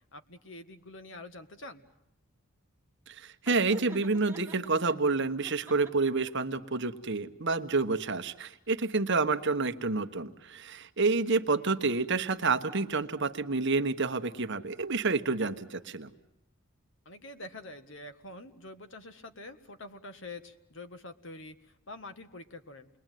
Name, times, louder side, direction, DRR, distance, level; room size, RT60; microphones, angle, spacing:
voice 1, 0.1-1.8 17.1-22.9, left 2 dB, 60° left, 9 dB, 1.7 m, -46 dB
voice 2, 3.1-16.1, right 3 dB, 55° right, 9 dB, 1.2 m, -29 dB
Laughter, 3.5-5.0 5.4-6.3, right 2 dB, 10° right, 1.6 m, -46 dB
28.5 x 22.0 x 9.2 m, 0.84 s
head